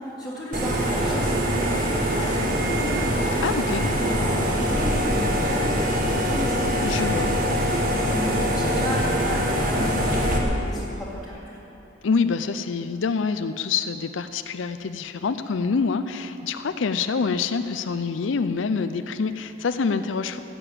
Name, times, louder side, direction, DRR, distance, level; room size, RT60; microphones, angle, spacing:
voice 1, 0.0-3.4 4.1-6.9 8.1-11.6, equal, ahead, -10 dB, 1.9 m, -34 dB
sound 1, 0.5-10.4, equal, 45° right, 1.6 m, -23 dB
voice 2, 3.4-3.9 6.8-7.3 12.0-20.4, left 5 dB, 80° left, 10 dB, 0.5 m, -26 dB
15.5 x 7.0 x 8.7 m, 2.9 s
head